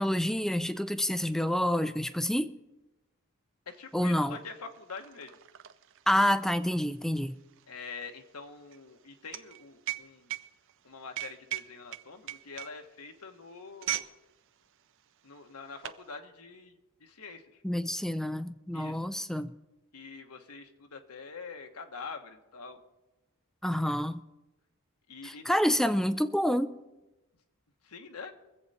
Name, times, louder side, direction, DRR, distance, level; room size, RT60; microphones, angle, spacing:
voice 1, 0.0-2.5 3.9-4.4 6.1-7.4 17.6-19.5 23.6-24.2 25.2-26.7, equal, ahead, 0.4 m, -28 dB
voice 2, 3.7-5.4 7.7-10.3 10.8-14.1 15.2-17.6 18.7-19.0 19.9-22.8 25.1-25.5 27.8-28.3, left 4 dB, 85° left, 1.3 m, -45 dB
sound 1, 3.9-4.0 4.2-14.2 14.5-14.7 15.4-16.1, right 14 dB, 60° right, 0.5 m, -39 dB
23.5 x 8.0 x 4.2 m
head